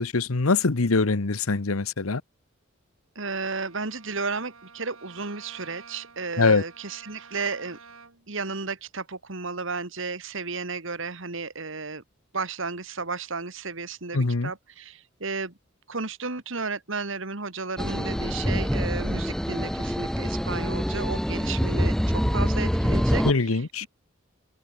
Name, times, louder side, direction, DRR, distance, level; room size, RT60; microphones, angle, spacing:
voice 1, 0.0-2.2 6.4-6.6 14.1-14.5 23.2-23.8, left 3 dB, 85° left, 1.1 m, -23 dB
voice 2, 3.2-7.8 8.3-12.0 12.3-15.5 15.9-23.9, right 4 dB, 65° right, 2.2 m, -33 dB
Bowed string instrument, 3.4-8.4, right 5 dB, 85° right, 5.8 m, -50 dB
sound 1, 17.8-23.3, equal, 5° left, 2.0 m, -25 dB
head